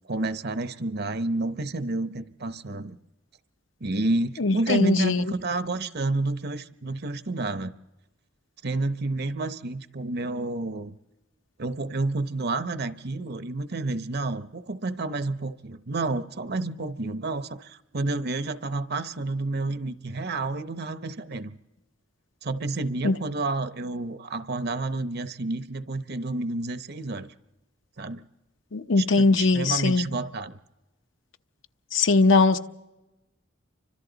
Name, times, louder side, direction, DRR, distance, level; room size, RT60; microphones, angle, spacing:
voice 1, 0.1-3.0 3.8-7.7 8.6-10.9 11.6-21.5 22.4-27.3 28.0-28.2 29.0-30.6, right 2 dB, 55° right, 0.8 m, -30 dB
voice 2, 4.4-5.2 23.0-23.2 28.7-30.1 31.9-32.6, left 3 dB, 75° left, 0.9 m, -20 dB
29.5 x 25.0 x 4.0 m
head